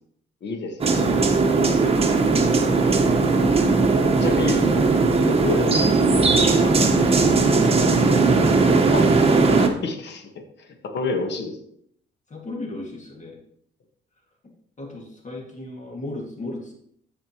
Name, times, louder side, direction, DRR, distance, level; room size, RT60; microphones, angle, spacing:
voice 1, 0.4-1.6 4.2-5.0 5.2-5.8 6.4-6.9 8.9-9.1 9.6-10.3 10.6-11.6, left 3 dB, 60° left, 4 dB, 1.4 m, -29 dB
sound 1, 0.8-9.7, right 3 dB, 30° right, 1.2 m, -18 dB
voice 2, 1.9-2.3 12.3-13.4 14.8-16.7, left 2 dB, 35° left, 0 dB, 2.1 m, -36 dB
14.0 x 5.1 x 3.0 m, 0.69 s
cardioid pair, 90°, 20 cm